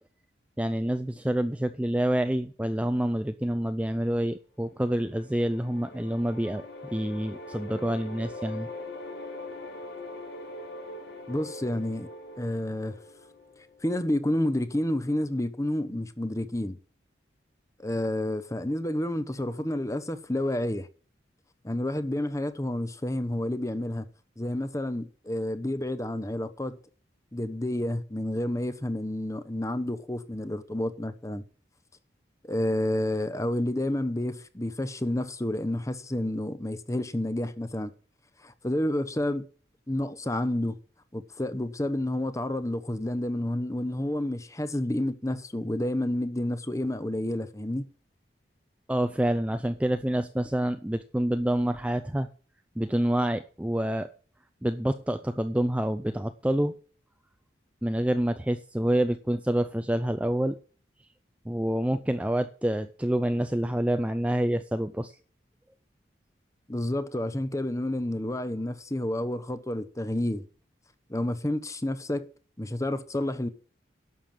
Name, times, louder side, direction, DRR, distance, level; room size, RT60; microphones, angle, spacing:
voice 1, 0.6-8.7 48.9-52.3 52.8-54.1 54.6-56.7 57.8-60.6 61.5-65.1, right 1 dB, 5° right, 0.5 m, -27 dB
sound 1, 4.8-14.0, left 2 dB, 80° left, 4.6 m, -42 dB
voice 2, 11.3-12.1 12.4-13.0 13.8-16.8 17.8-20.9 21.6-24.1 24.4-26.8 27.3-31.4 32.4-37.9 38.4-39.5 39.9-40.8 41.1-47.9 66.7-70.4 71.1-72.2 72.6-73.5, left 1 dB, 15° left, 0.9 m, -30 dB
11.5 x 6.7 x 7.3 m
head